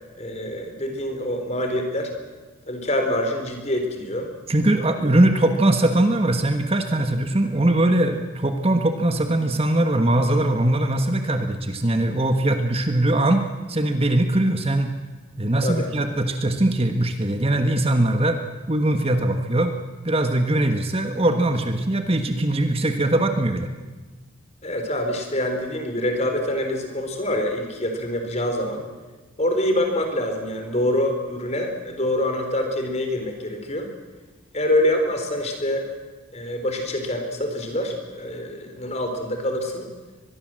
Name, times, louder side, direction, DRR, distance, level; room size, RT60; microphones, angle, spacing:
voice 1, 0.2-2.1 2.7-4.3 5.0-5.1 15.6-15.9 24.6-28.8 29.4-33.9 34.5-35.9 36.3-39.9, left 1 dB, 30° left, 5 dB, 3.9 m, -25 dB
voice 2, 4.5-13.4 13.7-14.9 15.4-18.4 18.7-19.8 20.0-23.7, right 1 dB, 30° right, 6 dB, 1.4 m, -21 dB
23.5 x 21.5 x 7.7 m, 1.3 s
head